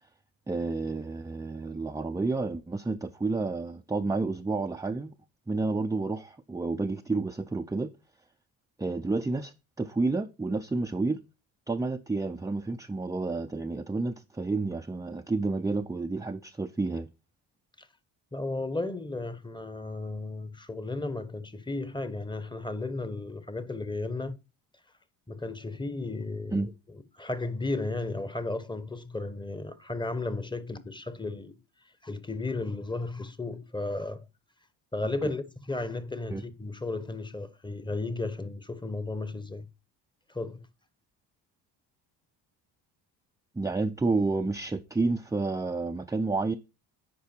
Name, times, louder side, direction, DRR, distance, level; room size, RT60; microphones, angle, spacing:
voice 1, 0.5-5.1 5.5-7.9 8.8-11.2 11.7-17.1 26.5-26.7 36.3-36.4 43.6-46.5, right 3 dB, 10° right, 0.5 m, -30 dB
voice 2, 18.3-24.4 25.3-31.6 32.0-34.3 34.9-39.7 40.3-40.6, left 2 dB, 10° left, 1.0 m, -34 dB
9.7 x 4.7 x 4.3 m
supercardioid pair, 75°, 44 cm